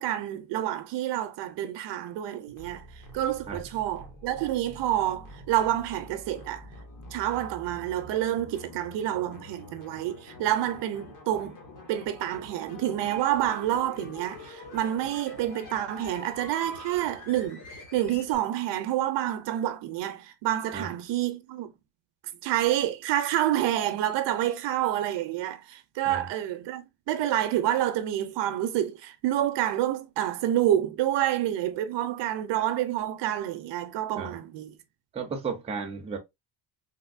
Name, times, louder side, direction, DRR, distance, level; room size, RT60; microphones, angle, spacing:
voice 1, 0.0-2.9 3.1-6.7 7.1-17.6 17.9-21.7 22.4-34.8, right 12 dB, 65° right, 0.6 m, -28 dB
sound 1, 2.5-18.4, left 1 dB, 40° left, 1.1 m, -46 dB
voice 2, 35.1-36.2, right 5 dB, 15° right, 0.5 m, -34 dB
3.5 x 2.6 x 2.4 m
cardioid pair, 170°, 46 cm